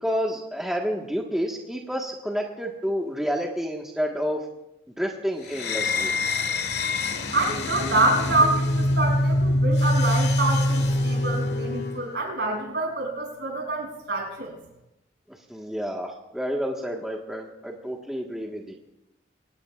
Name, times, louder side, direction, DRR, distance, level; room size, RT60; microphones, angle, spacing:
voice 1, 0.0-4.4 5.0-6.1 15.3-18.7, equal, 5° right, -1 dB, 1.4 m, -29 dB
sound 1, 5.5-12.1, left 1 dB, 60° left, 1.6 m, -24 dB
voice 2, 7.3-14.5, right 2 dB, 65° right, 0 dB, 6.7 m, -26 dB
24.0 x 19.5 x 2.4 m, 0.91 s
head